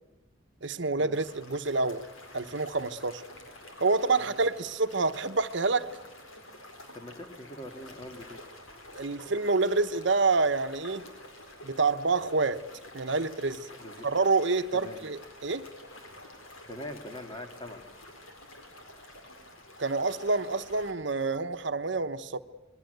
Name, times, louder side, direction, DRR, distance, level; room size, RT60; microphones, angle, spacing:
voice 1, 0.6-2.0 2.3-3.2 3.8-6.0 8.9-11.1 11.6-12.7 12.9-13.7 14.0-15.7 19.8-22.4, right 3 dB, 65° right, 1.0 m, -27 dB
sound 1, 1.1-20.9, left 1 dB, 90° left, 4.6 m, -49 dB
voice 2, 6.9-8.4 13.8-14.1 14.7-15.0 16.7-17.8, left 1 dB, 25° left, 2.5 m, -43 dB
26.5 x 21.5 x 8.0 m
head